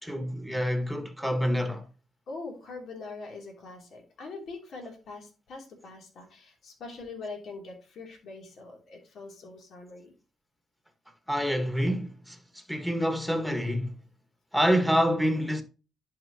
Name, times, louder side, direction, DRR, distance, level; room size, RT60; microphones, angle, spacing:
voice 1, 0.0-1.8 11.3-13.9 14.5-15.6, equal, ahead, 1.7 m, -27 dB
voice 2, 2.3-10.1, left 3 dB, 65° left, 2.9 m, -43 dB
11.0 x 5.1 x 2.9 m
cardioid pair, 90°, 0 cm